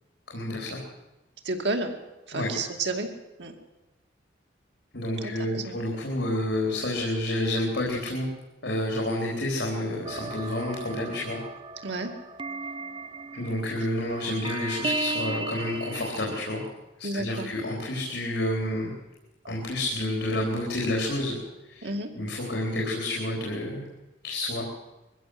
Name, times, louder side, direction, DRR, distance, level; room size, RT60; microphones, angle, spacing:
voice 1, 0.3-0.8 2.3-2.5 4.9-8.3 8.6-11.4 13.3-16.6 17.0-18.9 19.5-21.4 21.7-21.9 22.2-23.9 24.2-24.6, left 1 dB, 75° left, -2 dB, 4.0 m, -29 dB
voice 2, 1.4-1.9 2.3-3.1 3.4-3.5 5.2-5.8 11.8-12.1 17.0-17.5 21.8-22.1, right 2 dB, 75° right, 4 dB, 2.5 m, -31 dB
sound 1, 10.0-16.7, right 2 dB, 25° right, 0.6 m, -35 dB
22.0 x 15.5 x 7.9 m, 1.0 s
head